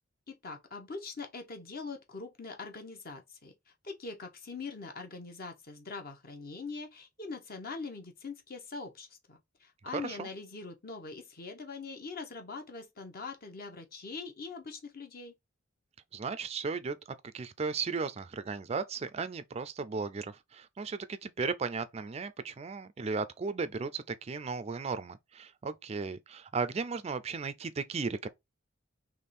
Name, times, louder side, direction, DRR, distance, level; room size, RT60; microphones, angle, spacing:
voice 1, 0.3-3.5 3.8-15.3, left 4 dB, 50° left, 0.9 m, -43 dB
voice 2, 9.9-10.3 16.1-17.0 17.3-28.3, right 4 dB, 30° right, 0.4 m, -35 dB
3.6 x 3.1 x 4.2 m
head